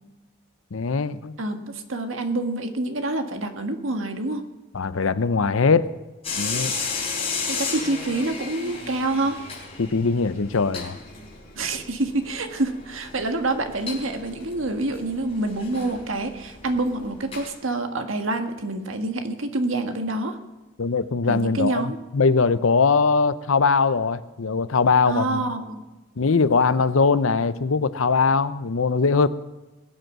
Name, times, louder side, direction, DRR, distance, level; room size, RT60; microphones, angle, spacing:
voice 1, 0.7-1.4 4.7-5.9 6.4-6.7 9.8-11.0 20.8-25.4 26.2-29.3, left 4 dB, 75° left, 14 dB, 0.7 m, -21 dB
voice 2, 1.4-4.4 7.5-9.4 11.6-20.4 21.3-22.0 25.1-25.8, right 2 dB, 75° right, 6 dB, 1.7 m, -27 dB
sound 1, 6.2-17.5, left 4 dB, 25° left, 4.0 m, -34 dB
21.0 x 7.9 x 6.2 m, 1.1 s
head